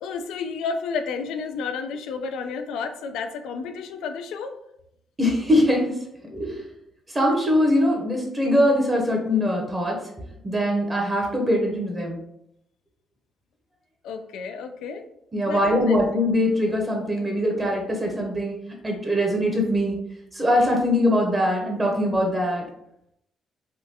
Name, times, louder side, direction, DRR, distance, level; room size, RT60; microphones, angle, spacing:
voice 1, 0.0-4.6 14.0-15.0 15.5-16.0, left 5 dB, 85° left, 7 dB, 0.3 m, -31 dB
voice 2, 5.2-5.9 6.3-6.6 7.1-10.0 10.4-12.2 15.3-18.5 18.8-20.0 20.3-22.6, left 1 dB, 20° right, 0 dB, 0.7 m, -22 dB
3.6 x 2.2 x 2.7 m, 0.78 s
cardioid pair, 90°, 0 cm